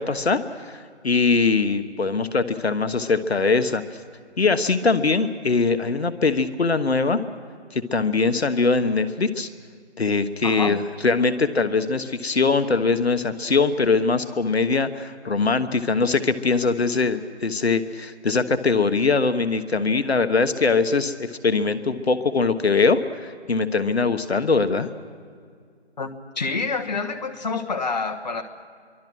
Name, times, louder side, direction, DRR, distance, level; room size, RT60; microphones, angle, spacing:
voice 1, 0.0-3.8 4.4-7.2 7.7-9.5 10.0-24.9, left 4 dB, 65° left, 10 dB, 1.3 m, -22 dB
voice 2, 10.4-10.8 26.0-26.1 26.3-28.4, left 4 dB, 40° left, 7 dB, 1.3 m, -27 dB
26.0 x 24.0 x 6.2 m, 2.1 s
figure-of-eight pair, 165°, 34 cm